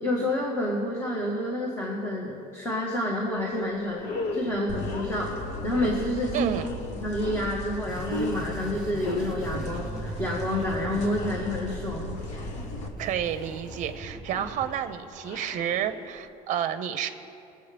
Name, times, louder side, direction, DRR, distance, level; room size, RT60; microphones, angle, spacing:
voice 1, 0.0-4.0 4.3-6.5 7.0-12.2, left 1 dB, 15° left, -2 dB, 1.4 m, -29 dB
sound 1, 3.4-3.6 3.9-16.3, left 2 dB, 75° left, 1.3 m, -39 dB
sound 2, 4.7-12.9, left 1 dB, 45° left, 1.2 m, -37 dB
voice 2, 6.3-6.7 13.0-17.1, right 9 dB, 50° right, 9 dB, 0.7 m, -30 dB
sound 3, 7.8-14.7, right 1 dB, 5° right, 1.0 m, -41 dB
22.0 x 7.8 x 3.4 m, 2.6 s
cardioid pair, 155°, 16 cm